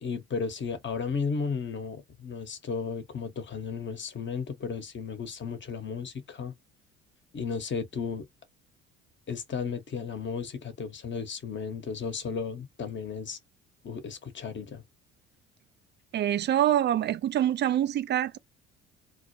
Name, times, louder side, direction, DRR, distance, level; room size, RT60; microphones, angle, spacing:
voice 1, 0.0-6.5 7.3-8.3 9.3-13.4 13.8-14.8, left 5 dB, 35° left, 1.0 m, -34 dB
voice 2, 16.1-18.4, right 11 dB, 35° right, 0.4 m, -25 dB
2.3 x 2.2 x 2.7 m
hypercardioid pair, 55°, 33 cm